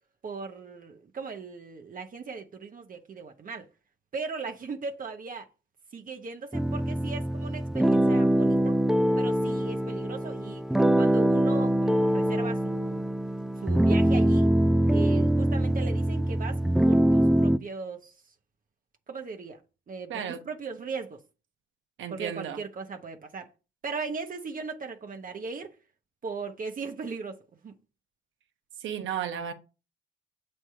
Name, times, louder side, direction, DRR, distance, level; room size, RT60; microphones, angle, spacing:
voice 1, 0.2-3.7 4.1-5.5 5.9-8.8 9.2-10.7 11.0-13.1 13.6-14.5 14.9-16.6 16.9-18.1 19.1-19.6 19.9-21.2 22.1-23.5 23.8-25.7 26.2-27.7, right 4 dB, 45° right, 1.1 m, -38 dB
sound 1, 6.5-17.6, right 1 dB, ahead, 0.3 m, -23 dB
voice 2, 20.1-20.4 22.0-22.6 28.8-29.5, right 9 dB, 75° right, 1.1 m, -33 dB
7.5 x 3.4 x 5.6 m
cardioid pair, 90°, 20 cm